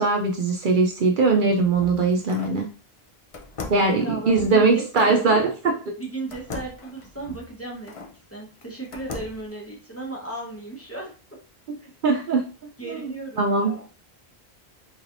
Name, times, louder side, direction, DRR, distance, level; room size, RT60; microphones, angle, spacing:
voice 1, 0.0-2.7 3.7-5.7 12.0-12.4 12.9-13.0 13.4-13.7, right 3 dB, 60° right, 2 dB, 0.6 m, -20 dB
sound 1, 1.3-2.6 3.3-5.2 6.3-8.1 8.6-9.5, left 4 dB, 40° left, 0.5 m, -39 dB
voice 2, 3.8-7.9 8.3-11.4 12.8-13.8, right 2 dB, 15° left, -3 dB, 0.9 m, -36 dB
3.9 x 3.2 x 2.5 m, 0.36 s
omnidirectional pair, 1.0 m